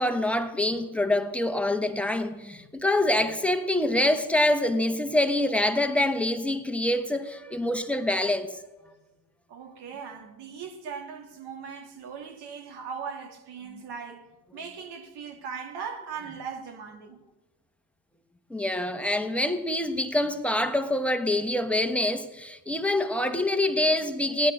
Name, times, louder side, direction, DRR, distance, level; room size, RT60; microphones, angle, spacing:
voice 1, 0.0-8.6 18.5-24.5, left 1 dB, 5° left, 1.3 m, -25 dB
voice 2, 9.5-14.3 14.5-17.2, right 6 dB, 65° right, 2.3 m, -39 dB
17.0 x 9.4 x 6.5 m
supercardioid pair, 80°, 43 cm